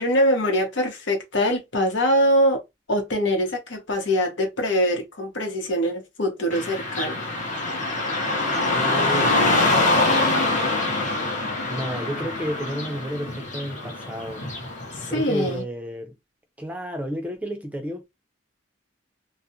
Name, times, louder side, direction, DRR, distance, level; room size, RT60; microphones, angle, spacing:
voice 1, 0.0-2.6 2.9-7.2 15.0-15.6, equal, 75° left, 0.9 m, -23 dB
Car passing by / Traffic noise roadway noise, 6.5-15.5, left 2 dB, 40° left, 0.8 m, -24 dB
voice 2, 8.7-9.7 11.6-14.4 15.1-16.2 16.6-18.1, equal, 10° right, 0.4 m, -31 dB
2.4 x 2.0 x 2.7 m
head